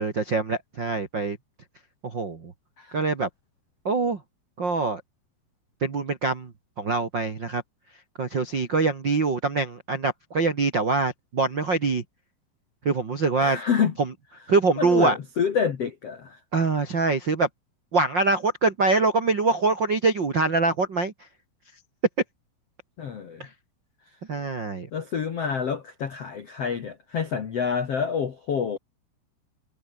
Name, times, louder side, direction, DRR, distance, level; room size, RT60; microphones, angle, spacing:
voice 1, 0.0-1.4 2.0-2.5 2.9-3.3 3.8-4.2 4.6-5.0 5.8-6.5 6.8-7.6 8.2-12.0 12.8-13.6 14.0-14.1 14.5-15.2 16.5-17.5 17.9-21.1 23.4-23.5 24.3-24.9, right 3 dB, 60° right, 1.1 m, -24 dB
voice 2, 13.4-13.9 14.8-16.4 23.0-23.5 24.9-28.8, left 7 dB, 75° left, 1.4 m, -27 dB
omnidirectional pair, 5.8 m